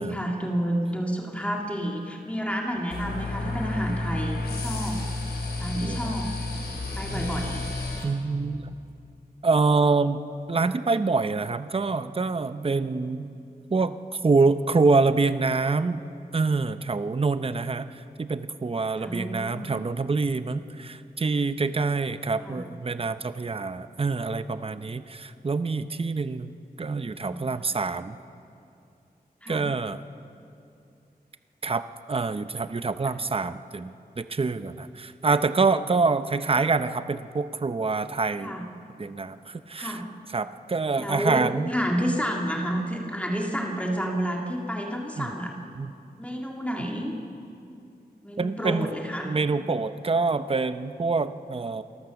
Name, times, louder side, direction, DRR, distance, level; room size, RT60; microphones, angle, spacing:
voice 1, 0.0-5.0 5.6-6.3 7.0-7.7 19.0-19.7 22.4-22.6 27.2-27.4 29.4-29.7 38.4-38.6 39.7-40.1 41.0-45.5 46.2-47.1 48.2-49.3, equal, 10° left, 0 dB, 2.1 m, -30 dB
sound 1, 2.9-8.0, left 2 dB, 85° left, 3.6 m, -31 dB
voice 2, 8.0-8.7 9.4-10.2 10.5-13.4 13.7-14.0 14.2-16.0 16.3-28.2 29.5-30.0 31.6-31.8 32.1-38.5 39.0-40.0 40.3-41.7 45.2-45.3 45.8-45.9 48.4-48.9 49.2-51.8, right 4 dB, 35° right, 12 dB, 0.7 m, -26 dB
28.0 x 14.0 x 7.0 m, 2.5 s
wide cardioid pair, 100°, 16 cm